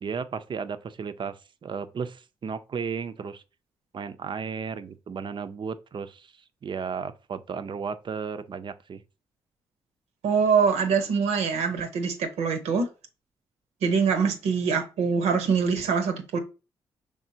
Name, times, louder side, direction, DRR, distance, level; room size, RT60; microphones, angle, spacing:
voice 1, 0.0-3.4 3.9-6.3 6.6-9.0, right 6 dB, 45° right, 0.5 m, -34 dB
voice 2, 10.2-12.9 13.8-16.4, right 5 dB, 80° right, 0.8 m, -24 dB
5.0 x 3.6 x 2.7 m
hypercardioid pair, 45°, 11 cm